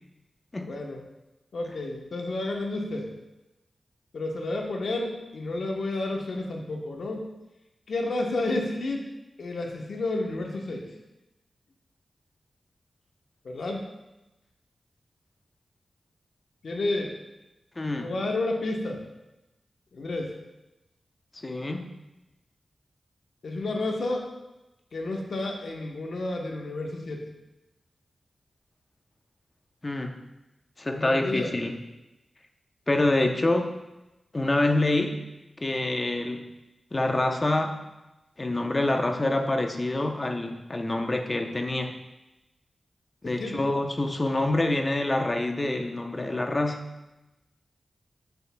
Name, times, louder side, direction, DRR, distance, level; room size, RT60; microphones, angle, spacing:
voice 1, 0.7-1.0 1.5-3.1 4.1-7.3 7.9-9.1 9.4-10.9 13.4-13.9 16.6-17.1 18.0-19.0 19.9-20.3 23.4-24.3 24.9-27.3 30.9-31.5 43.2-43.6, left 2 dB, 80° left, 1 dB, 1.1 m, -31 dB
voice 2, 17.8-18.1 21.3-21.9 29.8-30.2 30.8-31.8 32.9-33.8 34.3-35.3 35.6-36.5 36.9-37.8 38.4-42.0 43.2-46.9, left 2 dB, 30° left, 4 dB, 0.8 m, -26 dB
8.2 x 7.8 x 2.3 m, 0.99 s
wide cardioid pair, 75°, 0 cm